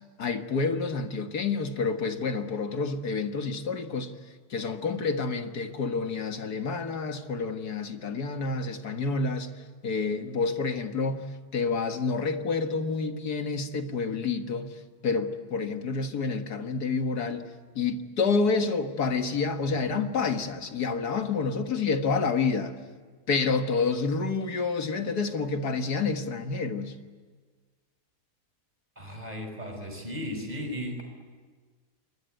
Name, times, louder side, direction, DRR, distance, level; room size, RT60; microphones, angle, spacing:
voice 1, 0.2-4.1 4.5-9.5 9.8-11.3 11.5-17.5 17.8-22.7 23.3-26.9, left 4 dB, 75° left, 2.1 m, -28 dB
voice 2, 29.0-31.0, equal, 25° right, 5.9 m, -35 dB
28.0 x 22.0 x 9.3 m
omnidirectional pair, 1.7 m